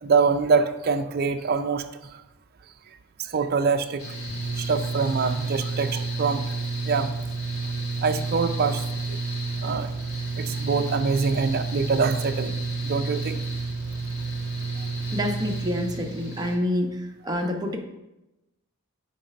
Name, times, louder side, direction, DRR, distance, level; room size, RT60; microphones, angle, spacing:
voice 1, 0.0-1.8 3.3-4.0 4.6-6.4 6.9-7.1 8.0-8.8 9.1-9.2 9.6-9.9 10.4-12.5 12.8-13.4, right 5 dB, 45° right, 7 dB, 0.4 m, -24 dB
Mechanical fan, 4.0-16.5, right 3 dB, 65° left, 1.5 m, -30 dB
voice 2, 15.1-16.9 17.2-17.8, left 1 dB, 15° right, 2 dB, 0.7 m, -27 dB
8.2 x 3.3 x 5.1 m, 0.95 s
head